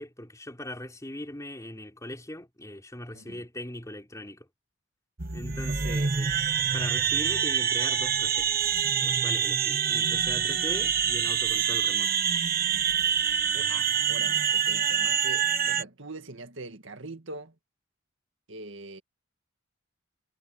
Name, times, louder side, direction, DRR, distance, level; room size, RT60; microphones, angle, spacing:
voice 1, 0.0-4.5 5.3-6.3 6.7-8.7 9.0-12.1, left 1 dB, 15° left, 3.8 m, -40 dB
sound 1, 5.2-15.8, right 8 dB, 45° right, 1.4 m, -26 dB
voice 2, 5.7-6.1 13.5-17.5 18.5-19.0, right 2 dB, 60° right, 2.0 m, -43 dB
head